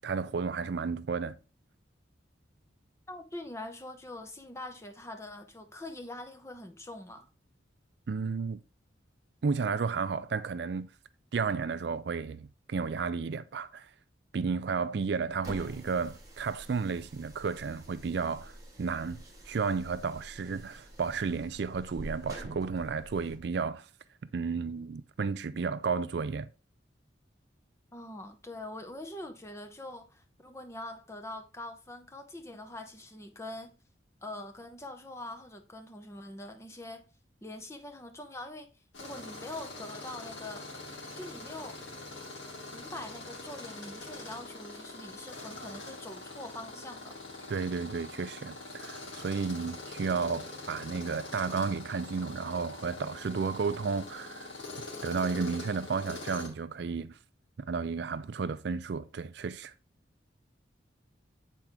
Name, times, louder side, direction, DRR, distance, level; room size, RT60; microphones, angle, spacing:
voice 1, 0.0-1.4 8.1-8.6 9.4-10.9 11.3-13.9 14.3-23.9 24.3-26.5 47.5-54.5 55.0-57.2 57.6-59.7, right 5 dB, 60° right, 0.4 m, -32 dB
voice 2, 3.1-7.3 27.9-33.7 34.2-37.0 37.4-38.7 39.0-40.7 41.1-41.8 42.7-47.2, left 1 dB, 15° left, 0.7 m, -44 dB
sound 1, 15.3-23.4, right 1 dB, 20° right, 1.7 m, -48 dB
Tools, 38.9-56.5, left 2 dB, 75° left, 2.1 m, -44 dB
7.4 x 4.5 x 3.6 m
head